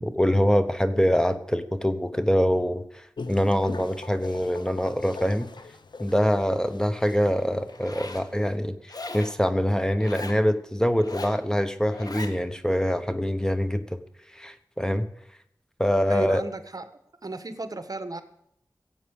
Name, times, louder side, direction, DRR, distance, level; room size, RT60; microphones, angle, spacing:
voice 1, 0.0-3.0 3.3-5.5 6.0-8.8 9.1-14.0 14.3-15.1 15.8-16.4, equal, 10° left, 10 dB, 1.0 m, -24 dB
sound 1, 3.2-8.6, left 4 dB, 85° left, 0.9 m, -42 dB
Zipper (clothing), 7.7-8.3 8.9-9.4 9.9-10.4 11.0-11.4 11.9-12.4, left 2 dB, 55° left, 1.5 m, -38 dB
voice 2, 16.1-16.8 17.2-18.2, right 3 dB, 55° right, 10 dB, 1.3 m, -34 dB
16.5 x 8.2 x 6.5 m, 0.75 s
wide cardioid pair, 60°, 8 cm